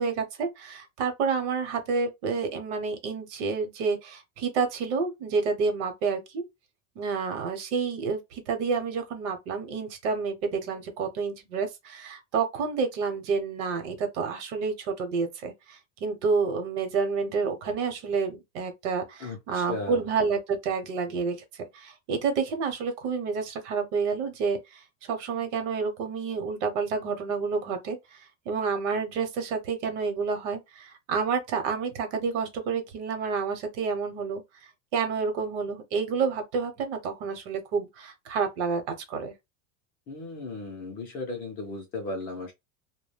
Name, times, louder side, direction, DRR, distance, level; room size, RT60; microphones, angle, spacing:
voice 1, 0.0-6.4 7.0-34.4 34.9-39.3, right 5 dB, 65° right, 0.9 m, -29 dB
voice 2, 19.2-20.0 40.1-42.5, left 3 dB, 25° left, 0.5 m, -36 dB
2.2 x 2.1 x 3.3 m
supercardioid pair, 165°, 38 cm